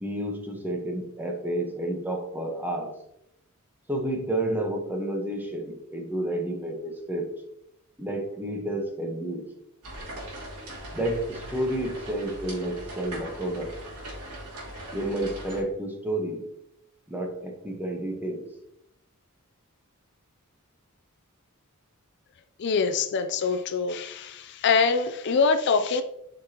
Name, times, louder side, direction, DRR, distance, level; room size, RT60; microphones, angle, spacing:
voice 1, 0.0-3.0 3.9-7.3 8.0-9.4 10.9-13.7 14.9-16.4 17.1-18.4, right 1 dB, 10° right, 2 dB, 1.0 m, -30 dB
sound 1, 9.8-15.6, right 1 dB, 80° right, 2.6 m, -40 dB
voice 2, 22.6-26.0, left 5 dB, 50° left, 9 dB, 0.4 m, -24 dB
7.7 x 5.1 x 2.9 m, 0.80 s
head